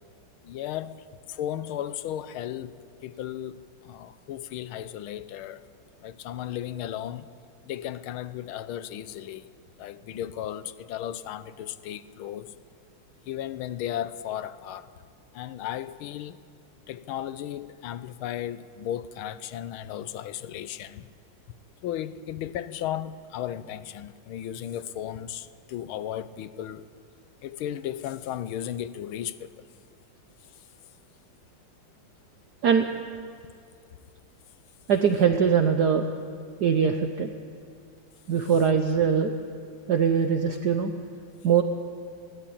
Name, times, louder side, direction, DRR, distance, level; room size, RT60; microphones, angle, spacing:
voice 1, 0.4-2.8 3.0-5.6 6.0-7.3 7.6-9.5 9.8-12.5 13.2-14.9 15.3-16.4 16.9-21.1 21.8-26.9 27.4-29.5, left 11 dB, 80° left, 1.5 m, -35 dB
voice 2, 34.9-36.1 36.6-37.3 38.3-39.3 39.9-40.9 41.4-41.6, right 7 dB, 60° right, 1.2 m, -22 dB
20.5 x 16.5 x 8.6 m
omnidirectional pair, 2.3 m